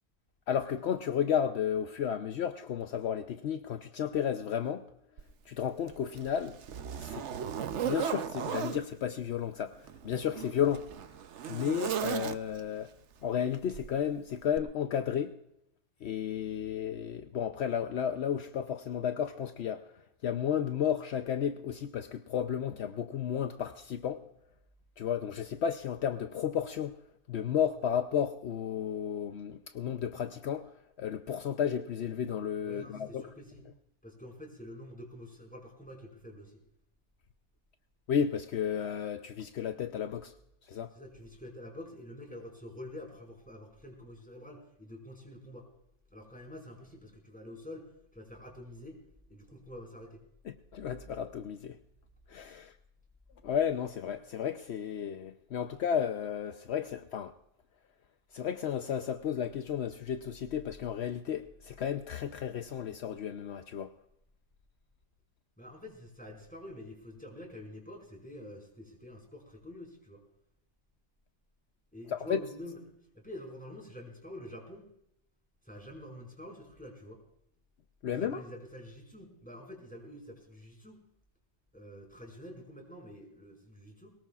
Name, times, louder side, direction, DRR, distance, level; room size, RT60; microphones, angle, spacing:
voice 1, 0.5-4.9 5.5-6.6 7.0-7.3 7.8-10.9 11.5-12.9 13.2-15.3 16.0-24.2 25.0-26.9 27.3-33.3 38.1-40.3 40.6-40.9 50.4-51.8 52.3-52.7 53.4-57.3 58.3-63.9 72.1-72.4 78.0-78.4, left 8 dB, 70° left, 8 dB, 0.9 m, -33 dB
Zipper (clothing), 5.2-5.3 5.9-8.8 9.8-12.7 13.7-13.9 14.5-14.6, right 8 dB, 80° right, 1.1 m, -36 dB
voice 2, 32.6-33.7 34.0-36.6 40.9-45.7 46.1-49.0 49.3-50.2 65.6-70.2 71.9-72.8 73.1-74.9 75.6-77.2 78.1-81.0 81.7-84.1, left 1 dB, 5° left, -1 dB, 5.0 m, -47 dB
22.0 x 19.5 x 2.4 m, 0.78 s
omnidirectional pair, 1.2 m